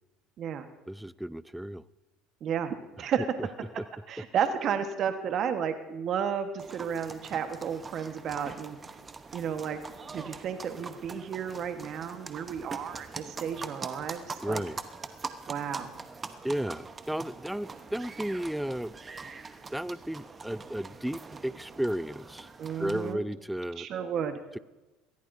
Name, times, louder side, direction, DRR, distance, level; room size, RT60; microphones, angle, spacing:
voice 1, 0.9-1.8 14.4-14.8 16.4-18.9 19.7-22.5 22.8-23.9, right 1 dB, 5° right, 19 dB, 0.4 m, -33 dB
voice 2, 2.4-3.3 3.7-8.8 9.3-9.8 10.1-14.6 15.5-15.9 22.6-23.2 23.8-24.4, right 8 dB, 50° right, 8 dB, 1.3 m, -32 dB
sound 1, 6.6-23.1, right 4 dB, 25° right, 1.0 m, -43 dB
23.0 x 16.0 x 2.7 m, 1.1 s
hypercardioid pair, 80°, 0 cm